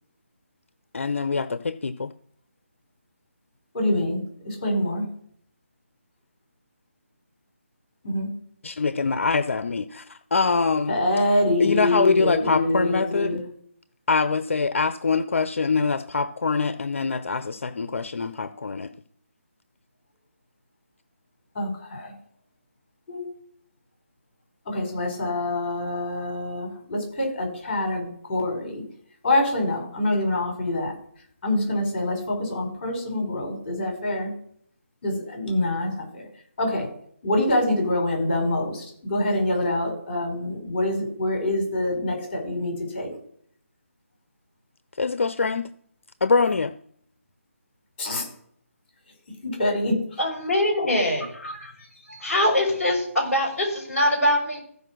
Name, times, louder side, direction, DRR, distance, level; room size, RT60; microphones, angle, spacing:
voice 1, 0.9-2.1 8.6-11.0 11.6-13.4 14.1-18.9 45.0-45.7 46.2-46.7, left 4 dB, 60° left, 12 dB, 0.7 m, -24 dB
voice 2, 3.7-5.1 8.0-8.3 10.9-13.4 21.5-22.1 23.1-23.3 24.7-28.8 29.2-31.0 31.4-34.3 35.0-36.3 36.6-36.9 37.2-43.1 48.0-48.3 49.4-50.2, left 1 dB, 25° left, 1 dB, 5.4 m, -25 dB
voice 3, 50.2-51.7 52.1-54.6, left 1 dB, ahead, -11 dB, 5.4 m, -23 dB
15.0 x 5.3 x 6.1 m, 0.64 s
figure-of-eight pair, 165°, 8 cm